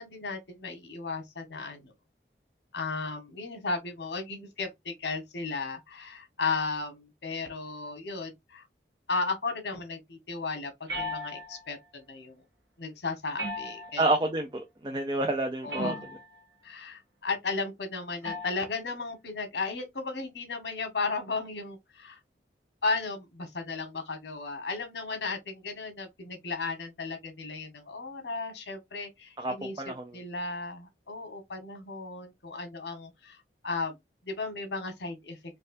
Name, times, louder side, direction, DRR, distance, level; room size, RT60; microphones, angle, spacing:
voice 1, 0.0-1.9 2.7-8.7 9.1-12.4 12.8-14.0 15.6-16.0 16.6-22.2 22.8-29.7 30.1-34.0 34.2-35.4, left 3 dB, 85° left, 1.2 m, -35 dB
sound 1, 10.9-11.7 13.4-14.2 15.7-16.4 18.2-18.7, equal, 80° right, 1.3 m, -36 dB
voice 2, 14.0-16.0 29.4-30.2, right 2 dB, 25° right, 0.5 m, -29 dB
4.2 x 2.5 x 2.5 m
head